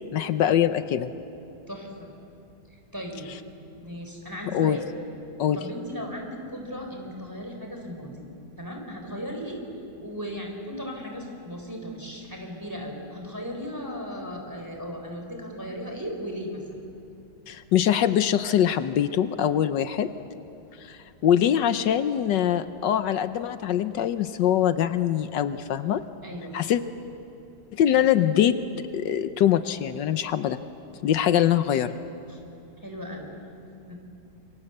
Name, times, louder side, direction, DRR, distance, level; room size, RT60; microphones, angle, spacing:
voice 1, 0.1-1.1 4.5-4.8 5.4-5.6 17.5-20.1 20.8-26.0 26.5-26.8 27.7-28.6 28.9-30.6 31.0-31.9, left 10 dB, 80° left, 11 dB, 1.4 m, -23 dB
voice 2, 1.7-2.1 2.7-3.3 3.7-4.9 5.5-8.3 8.6-9.6 10.0-16.8 26.2-26.7 32.3-32.4 32.8-33.3 33.9-34.0, equal, 10° right, 2 dB, 4.1 m, -36 dB
27.5 x 23.5 x 7.9 m, 2.7 s
omnidirectional pair, 1.9 m